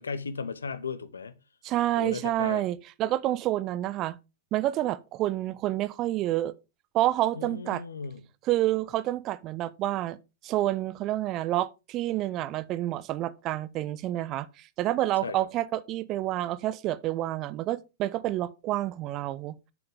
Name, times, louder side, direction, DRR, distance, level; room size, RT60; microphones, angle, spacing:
voice 1, 0.0-1.4 2.0-2.6 7.3-8.2 15.2-15.5, left 5 dB, 70° left, 0.8 m, -36 dB
voice 2, 1.6-4.2 4.5-6.5 6.9-7.8 8.4-10.2 10.4-19.5, right 14 dB, 35° right, 0.5 m, -28 dB
7.7 x 7.5 x 3.4 m
figure-of-eight pair, 100°, 0 cm